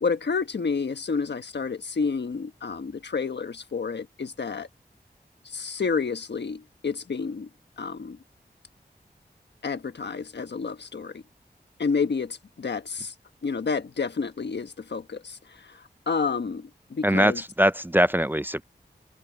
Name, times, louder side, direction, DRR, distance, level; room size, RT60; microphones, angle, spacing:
voice 1, 0.0-4.7 5.4-7.5 7.8-8.2 9.6-11.2 11.8-13.1 13.4-17.4, left 5 dB, 90° left, 1.3 m, -30 dB
voice 2, 17.0-18.6, equal, 10° right, 0.5 m, -22 dB
wide cardioid pair, 75°, 17 cm